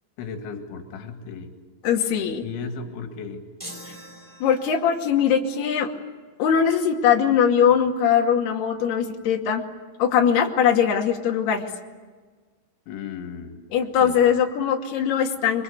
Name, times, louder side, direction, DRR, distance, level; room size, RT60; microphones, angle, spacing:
voice 1, 0.2-1.5 2.4-3.5 12.9-13.6 14.0-14.2, left 5 dB, 90° left, 5 dB, 4.5 m, -35 dB
voice 2, 1.8-2.4 4.4-5.9 6.4-9.6 10.0-11.7 13.7-15.6, left 8 dB, 65° left, 1 dB, 4.3 m, -21 dB
sound 1, 3.6-5.1, equal, 5° right, 4.6 m, -42 dB
28.0 x 24.5 x 8.2 m, 1.4 s
omnidirectional pair, 5.3 m